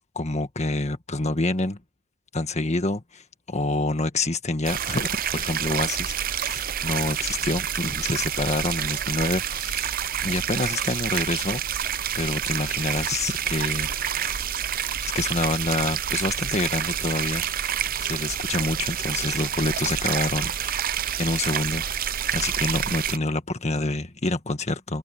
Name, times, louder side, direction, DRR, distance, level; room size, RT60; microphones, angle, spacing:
voice 1, 0.2-1.8 2.3-14.4 15.1-20.8 21.2-21.8 22.3-25.0, left 2 dB, 35° left, 1.7 m, -27 dB
sound 1, 4.6-23.2, right 9 dB, 45° right, 0.6 m, -28 dB
head